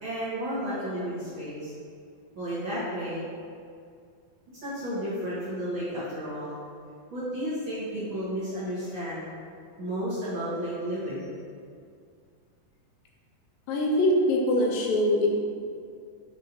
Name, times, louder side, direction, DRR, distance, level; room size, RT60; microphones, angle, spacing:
voice 1, 0.0-1.7 2.3-3.3 4.6-6.6 7.1-9.3 9.8-11.3, equal, 45° right, -11 dB, 2.0 m, -32 dB
voice 2, 13.7-15.3, left 1 dB, 80° left, -1 dB, 2.6 m, -23 dB
6.6 x 4.0 x 5.3 m, 2.3 s
omnidirectional pair, 4.0 m